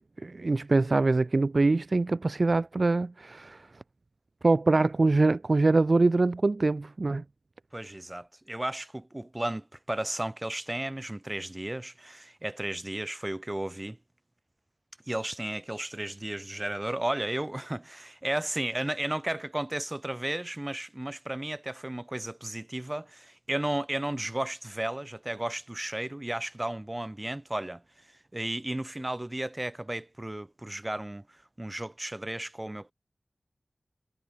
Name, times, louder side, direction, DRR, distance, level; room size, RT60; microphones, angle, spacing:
voice 1, 0.2-3.6 4.4-7.2, right 3 dB, 60° right, 0.4 m, -24 dB
voice 2, 7.7-14.0 15.1-27.8 28.3-31.2 31.6-32.9, right 1 dB, 25° right, 1.1 m, -34 dB
cardioid pair, 40°, 0 cm